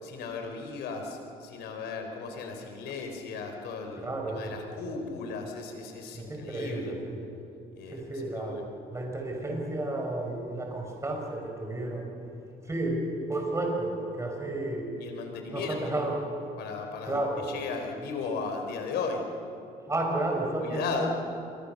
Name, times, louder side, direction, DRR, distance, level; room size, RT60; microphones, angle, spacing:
voice 1, 0.0-7.0 7.8-8.7 15.0-16.3 16.6-19.3 20.6-21.1, left 4 dB, 80° left, 4 dB, 4.5 m, -36 dB
voice 2, 4.0-4.5 6.1-7.2 7.9-12.1 12.6-14.9 15.5-16.2 17.1-17.5 19.9-21.1, right 2 dB, 15° right, 1 dB, 5.7 m, -32 dB
27.5 x 24.0 x 6.8 m, 2.7 s
cardioid pair, 110°, 17 cm